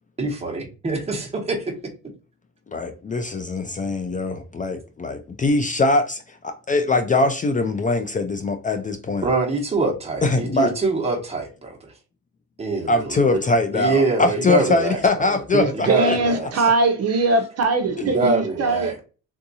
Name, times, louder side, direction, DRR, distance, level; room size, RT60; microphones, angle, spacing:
voice 1, 0.2-1.7 9.2-11.9 12.6-13.4 13.7-15.4 15.7-16.7 18.0-19.0, right 3 dB, 20° right, 1.1 m, -24 dB
voice 2, 2.7-9.3 10.2-10.7 12.9-16.2 16.6-16.7 18.0-18.1, left 2 dB, 25° left, 0.4 m, -22 dB
voice 3, 15.5-18.9, right 3 dB, 55° right, 0.7 m, -21 dB
3.5 x 2.7 x 2.7 m
cardioid pair, 90°, 30 cm